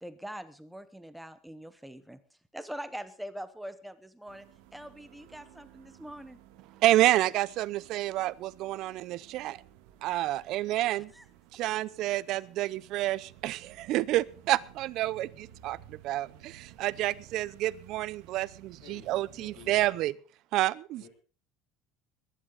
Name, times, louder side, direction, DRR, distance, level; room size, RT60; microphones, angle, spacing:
voice 1, 0.0-2.2 2.5-4.5 4.7-6.4 11.1-11.2, equal, ahead, 11 dB, 0.9 m, -43 dB
sound 1, 4.3-19.9, right 11 dB, 75° right, 1.7 m, -55 dB
voice 2, 6.8-9.6 10.0-11.1 11.5-20.1 20.5-21.0, right 15 dB, 50° right, 19 dB, 0.6 m, -29 dB
voice 3, 18.8-19.8 21.0-21.1, left 7 dB, 75° left, 2 dB, 2.9 m, -52 dB
21.5 x 11.0 x 4.0 m, 0.36 s
cardioid pair, 160°, 0 cm